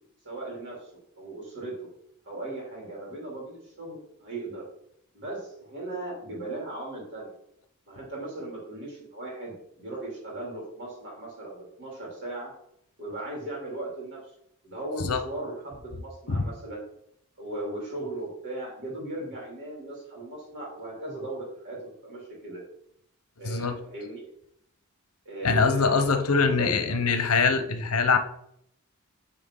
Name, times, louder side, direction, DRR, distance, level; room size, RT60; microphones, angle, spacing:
voice 1, 0.2-0.9 1.2-1.9 2.2-4.7 5.1-7.3 7.9-12.5 13.0-14.3 14.6-16.8 17.4-22.6 23.4-24.2 25.2-27.1, right 2 dB, 55° right, -4 dB, 3.0 m, -37 dB
voice 2, 23.4-23.8 25.4-28.2, left 4 dB, 75° left, 9 dB, 0.9 m, -23 dB
9.1 x 4.3 x 3.8 m, 0.72 s
head